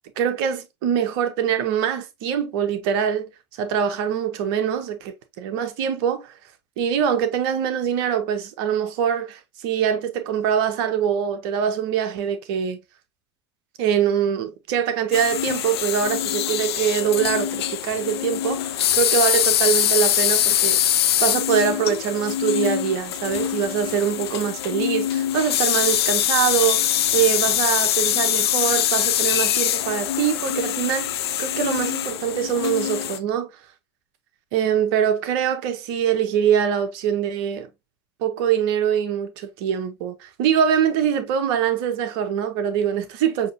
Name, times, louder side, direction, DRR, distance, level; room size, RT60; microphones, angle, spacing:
voice 1, 0.2-3.3 3.6-6.3 6.8-12.8 13.8-20.8 21.2-33.5 34.5-37.7 38.2-43.5, right 8 dB, 55° right, 0.9 m, -23 dB
sound 1, 15.1-33.2, left 11 dB, 70° left, 0.6 m, -23 dB
6.3 x 2.9 x 2.6 m
figure-of-eight pair, 70°, 14 cm